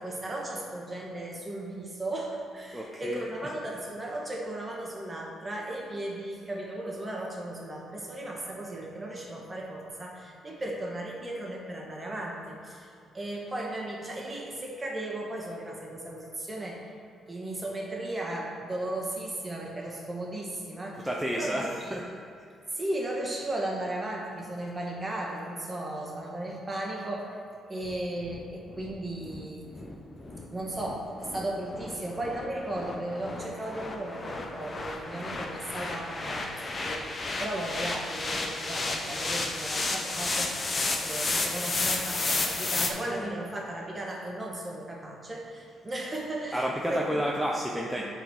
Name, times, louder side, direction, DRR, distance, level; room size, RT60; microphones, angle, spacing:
voice 1, 0.0-17.0 17.3-21.1 21.3-21.9 22.7-27.4 27.7-29.7 30.5-40.6 41.0-47.2, right 1 dB, 25° right, -1 dB, 1.6 m, -36 dB
voice 2, 2.7-3.2 21.0-22.0 43.1-43.3 46.5-48.0, equal, 5° right, -2 dB, 0.7 m, -30 dB
sound 1, 27.8-42.9, left 3 dB, 35° left, 0.9 m, -33 dB
8.1 x 4.1 x 6.1 m, 2.4 s
cardioid pair, 90°, 0 cm